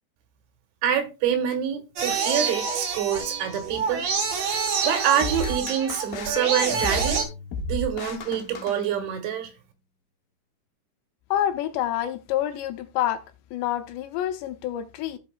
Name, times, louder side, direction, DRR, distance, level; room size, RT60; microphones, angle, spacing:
voice 1, 0.8-4.1 4.8-7.2 7.7-9.5, right 9 dB, 80° right, 3.7 m, -26 dB
sound 1, 2.0-7.2, right 5 dB, 65° right, 1.7 m, -27 dB
sound 2, 5.2-9.4, left 1 dB, 65° left, 2.6 m, -33 dB
voice 2, 11.3-13.2 13.5-15.2, left 11 dB, 80° left, 2.7 m, -27 dB
15.0 x 5.8 x 2.3 m
omnidirectional pair, 5.3 m